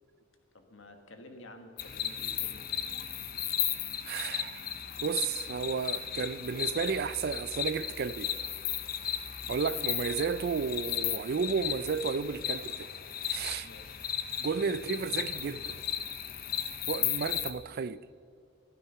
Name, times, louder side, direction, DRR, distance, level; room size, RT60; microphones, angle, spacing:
voice 1, 0.5-2.9 13.6-14.0, left 2 dB, 70° left, 1.7 m, -51 dB
sound 1, 1.8-17.5, left 9 dB, 45° left, 0.9 m, -35 dB
voice 2, 4.0-4.7 5.0-8.3 9.5-12.9 13.3-13.7 14.4-15.8 16.9-18.0, right 5 dB, 50° right, 0.4 m, -32 dB
15.5 x 12.0 x 5.7 m
head